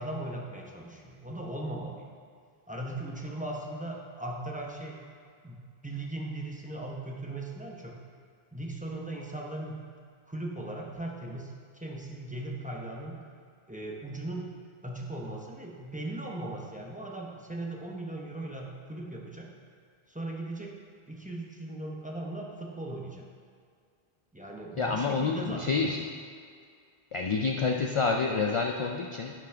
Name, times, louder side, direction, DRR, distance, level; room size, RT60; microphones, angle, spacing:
voice 1, 0.0-2.1 2.7-5.0 5.4-8.0 8.5-9.8 10.3-11.5 11.8-13.1 13.7-14.5 14.8-19.5 20.1-20.7 21.1-23.2 24.3-25.9, right 1 dB, 10° right, -2 dB, 0.8 m, -38 dB
voice 2, 24.8-26.1 27.1-29.4, left 4 dB, 55° left, 2 dB, 0.3 m, -28 dB
10.5 x 6.1 x 3.4 m, 2.2 s
omnidirectional pair, 1.1 m